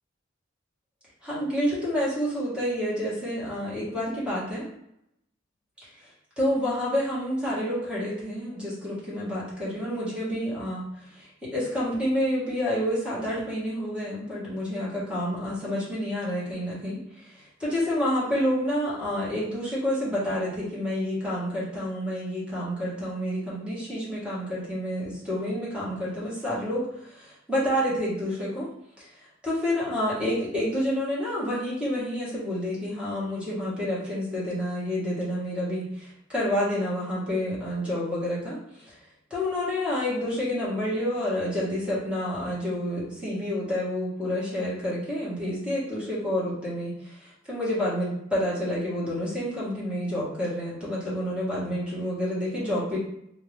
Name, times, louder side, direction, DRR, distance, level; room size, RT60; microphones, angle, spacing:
voice 1, 1.2-4.6 6.4-28.7 29.0-29.1 29.4-38.9 39.3-53.0, equal, 5° right, -9 dB, 1.5 m, -29 dB
3.7 x 2.8 x 3.3 m, 0.77 s
head